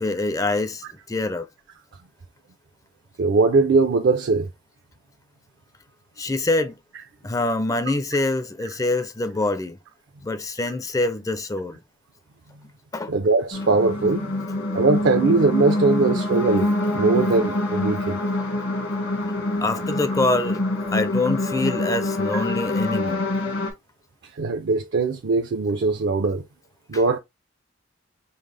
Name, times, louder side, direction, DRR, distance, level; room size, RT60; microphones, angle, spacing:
voice 1, 0.0-1.5 6.2-6.8 7.2-9.8 10.2-11.8 12.9-13.1 19.6-20.6 20.9-23.2, left 2 dB, 15° left, 0.4 m, -25 dB
voice 2, 3.2-4.5 13.1-14.4 14.7-18.2 22.3-22.4 24.4-26.4 26.9-27.2, right 3 dB, 60° right, 0.5 m, -21 dB
sound 1, 13.5-23.7, left 2 dB, 70° left, 1.5 m, -25 dB
5.4 x 2.0 x 3.2 m
head